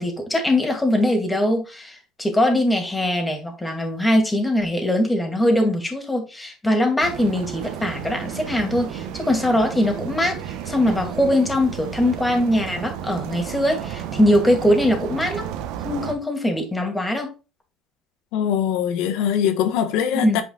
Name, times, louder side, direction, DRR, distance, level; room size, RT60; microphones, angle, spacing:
voice 1, 0.0-15.5 15.8-17.3 20.2-20.4, left 1 dB, 10° left, 2.5 m, -21 dB
sound 1, 7.0-16.1, right 9 dB, 80° right, 1.0 m, -32 dB
voice 2, 18.3-20.4, left 9 dB, 80° left, 1.3 m, -22 dB
8.5 x 5.4 x 2.4 m
cardioid pair, 115°, 0 cm